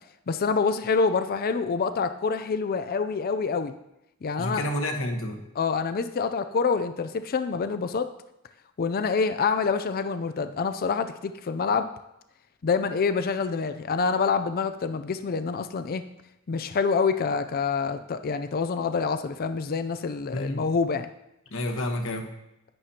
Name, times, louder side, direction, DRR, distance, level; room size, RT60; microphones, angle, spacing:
voice 1, 0.3-3.7 4.2-4.6 5.6-8.1 8.8-11.9 12.6-16.0 16.5-21.1, left 5 dB, 45° left, 9 dB, 0.4 m, -26 dB
voice 2, 4.4-5.4 20.3-20.7 21.5-22.3, left 1 dB, 65° left, 4 dB, 1.2 m, -29 dB
11.0 x 9.0 x 2.8 m, 0.86 s
head